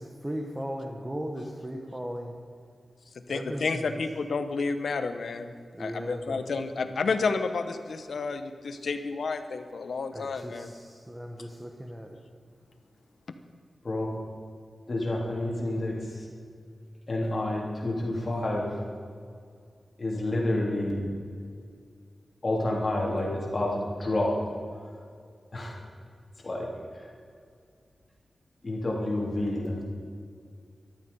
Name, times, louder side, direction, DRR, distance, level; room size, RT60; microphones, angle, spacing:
voice 1, 0.0-2.3 3.3-4.0 5.7-6.5 10.1-12.2, equal, 10° right, 2 dB, 1.1 m, -37 dB
voice 2, 3.3-5.5 5.8-10.7, left 4 dB, 70° left, 9 dB, 1.0 m, -30 dB
voice 3, 14.9-16.3 17.1-18.8 20.0-21.0 22.4-24.4 25.5-25.8 26.4-26.7 28.6-29.8, left 1 dB, 35° left, -3 dB, 3.2 m, -29 dB
14.0 x 12.5 x 5.5 m, 2.2 s
wide cardioid pair, 160°, 0 cm